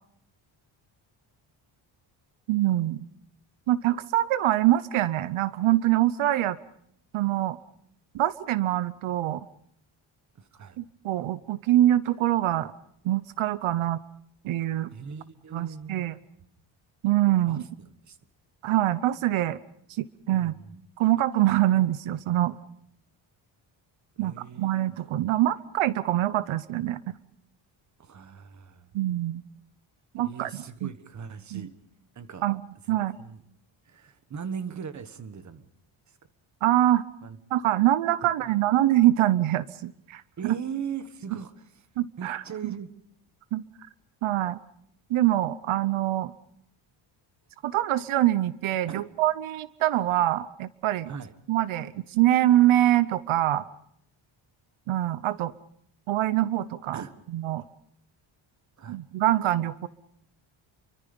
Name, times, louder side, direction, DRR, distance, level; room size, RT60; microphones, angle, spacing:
voice 1, 2.5-3.0 3.7-6.6 7.1-7.6 8.1-9.5 10.8-12.7 13.0-14.0 14.4-14.9 15.5-16.1 17.0-17.6 18.6-19.6 20.0-20.5 21.0-22.6 24.2-24.3 24.6-27.2 28.9-29.4 30.1-30.5 30.8-30.9 31.5-31.7 32.4-32.6 32.9-33.2 36.6-37.0 37.5-40.5 42.0-42.4 43.5-43.6 44.2-44.6 45.1-46.3 47.6-51.1 51.5-53.6 54.9-55.5 56.1-57.0 57.3-57.6 58.9-59.9, right 14 dB, 80° right, 15 dB, 0.9 m, -24 dB
voice 2, 10.3-10.8 14.9-16.1 17.5-17.7 18.0-18.2 20.3-20.7 24.2-24.7 28.0-28.9 30.2-31.7 32.1-32.4 32.9-33.4 33.8-35.7 36.1-36.2 37.2-37.4 38.2-38.5 40.4-41.9 42.2-42.9 48.9-49.1 51.1-51.4 56.9-57.2 58.8-59.0, right 7 dB, 35° right, 12 dB, 1.3 m, -39 dB
29.0 x 24.0 x 5.3 m, 0.68 s
cardioid pair, 170°, 48 cm